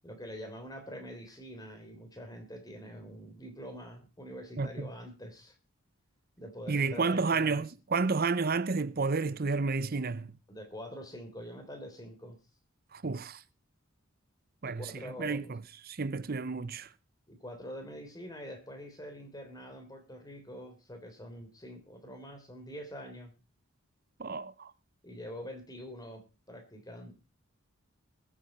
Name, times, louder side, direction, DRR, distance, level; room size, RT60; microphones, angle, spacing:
voice 1, 0.0-5.6 6.4-7.6 10.5-12.4 14.6-15.6 17.3-23.3 25.0-27.1, equal, 15° left, 3.5 m, -45 dB
voice 2, 4.6-4.9 6.7-10.4 12.9-13.4 14.6-16.9 24.2-24.7, right 4 dB, 45° right, 0.6 m, -31 dB
21.0 x 8.5 x 4.1 m
head